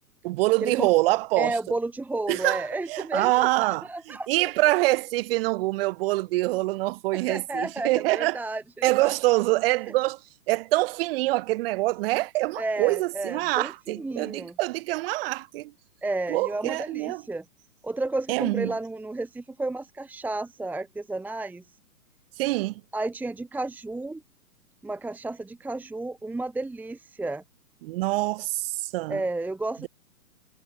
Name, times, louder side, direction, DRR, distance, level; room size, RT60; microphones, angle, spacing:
voice 1, 0.2-1.6 2.3-8.4 8.8-10.2 10.5-15.7 16.3-17.2 18.3-18.8 22.4-22.8 27.8-29.2, right 20 dB, 40° right, 6.0 m, -25 dB
voice 2, 1.4-4.3 7.1-9.1 12.6-14.5 16.0-17.4 17.8-21.6 22.9-24.2 24.8-27.4 29.1-29.9, right 2 dB, 5° right, 1.4 m, -32 dB
figure-of-eight pair, 120°, 45 cm